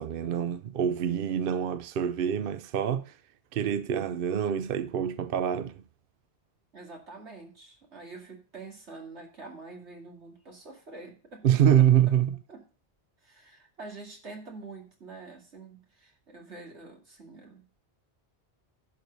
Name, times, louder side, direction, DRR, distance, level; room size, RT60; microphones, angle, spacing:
voice 1, 0.0-3.1 3.5-5.8 11.4-12.4, right 9 dB, 60° right, 0.7 m, -25 dB
voice 2, 6.7-11.5 11.8-12.1 12.5-12.6 13.2-17.7, right 3 dB, 80° right, 2.7 m, -46 dB
11.0 x 4.7 x 6.7 m
omnidirectional pair, 1.1 m